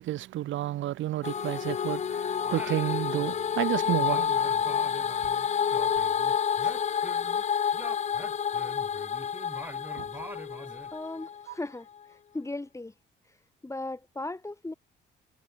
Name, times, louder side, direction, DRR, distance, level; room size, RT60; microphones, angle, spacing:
voice 1, 0.0-4.8 10.0-10.1, right 14 dB, 75° right, 0.8 m, -31 dB
sound 1, 1.2-11.4, left 7 dB, 35° left, 0.5 m, -29 dB
Singing, 2.4-3.5 3.8-7.4 7.7-11.0, right 1 dB, 10° right, 6.0 m, -45 dB
voice 2, 10.9-12.9 13.3-13.4 13.6-14.7, left 2 dB, 15° left, 5.1 m, -37 dB
cardioid pair, 90°, 20 cm